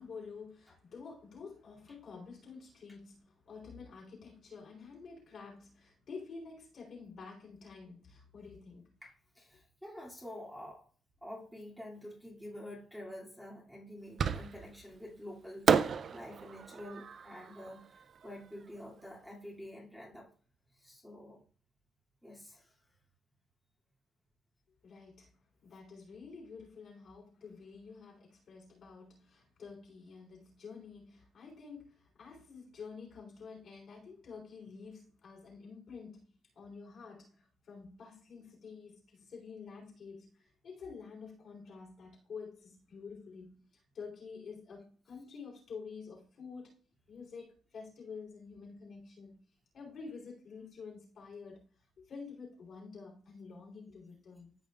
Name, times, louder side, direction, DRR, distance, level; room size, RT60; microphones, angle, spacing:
voice 1, 0.0-8.9 24.8-25.4 25.6-36.3 36.6-46.7 47.1-49.4 49.7-51.6 52.0-54.7, left 5 dB, 60° left, 3.8 m, -49 dB
voice 2, 9.0-10.9 11.2-20.3 20.7-21.4 22.2-22.8, left 1 dB, ahead, 2.7 m, -48 dB
Fireworks, 14.2-14.9 15.7-18.8, right 6 dB, 55° right, 0.5 m, -32 dB
14.0 x 5.3 x 2.5 m
cardioid pair, 90°, 0 cm